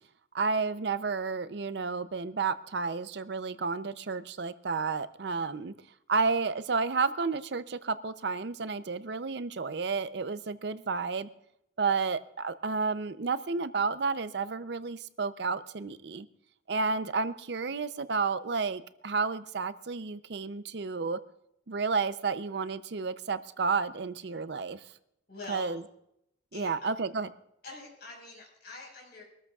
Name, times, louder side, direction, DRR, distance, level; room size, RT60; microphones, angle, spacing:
voice 1, 0.3-5.7 6.1-11.3 11.8-16.3 16.7-21.2 21.7-24.8 25.5-25.8 26.5-27.3, right 4 dB, 60° right, 13 dB, 0.5 m, -31 dB
voice 2, 25.3-25.7 26.5-26.7 27.6-29.2, left 3 dB, 55° left, -2 dB, 5.0 m, -44 dB
23.5 x 13.5 x 2.4 m, 0.77 s
head